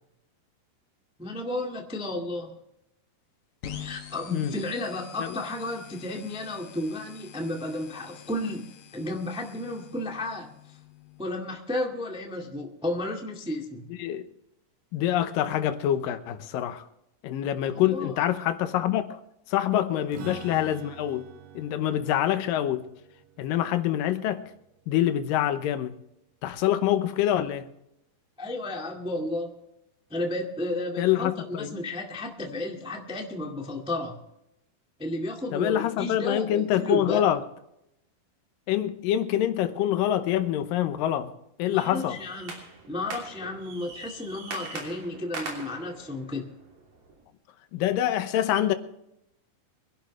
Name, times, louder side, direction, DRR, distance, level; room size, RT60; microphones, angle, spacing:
voice 1, 1.2-2.5 3.8-8.6 8.9-10.8 11.2-13.9 17.7-18.1 19.9-20.0 28.4-29.5 30.1-34.2 35.0-37.2 41.7-42.5 42.9-46.5, left 1 dB, 5° right, 0.7 m, -33 dB
sound 1, 3.6-11.2, left 9 dB, 60° left, 2.6 m, -46 dB
voice 2, 14.9-16.8 17.2-19.2 19.5-21.3 21.6-22.9 23.4-24.4 24.9-25.9 26.4-27.7 31.0-31.8 35.5-37.4 38.7-41.3 41.6-42.2 47.7-48.7, left 11 dB, 80° left, 2.6 m, -25 dB
Strum, 20.1-25.7, right 8 dB, 80° right, 3.4 m, -48 dB
sound 2, 41.8-47.2, right 3 dB, 65° right, 4.6 m, -42 dB
24.5 x 11.5 x 3.2 m
omnidirectional pair, 4.0 m